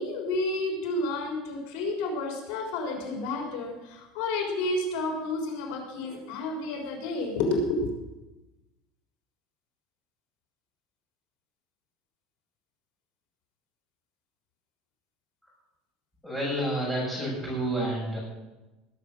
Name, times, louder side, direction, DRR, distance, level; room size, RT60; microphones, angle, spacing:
voice 1, 0.0-7.9, left 2 dB, 80° left, 2 dB, 3.7 m, -30 dB
voice 2, 16.2-18.2, right 1 dB, ahead, -6 dB, 6.8 m, -29 dB
19.5 x 8.2 x 6.3 m, 1.0 s
cardioid pair, 165°, 0 cm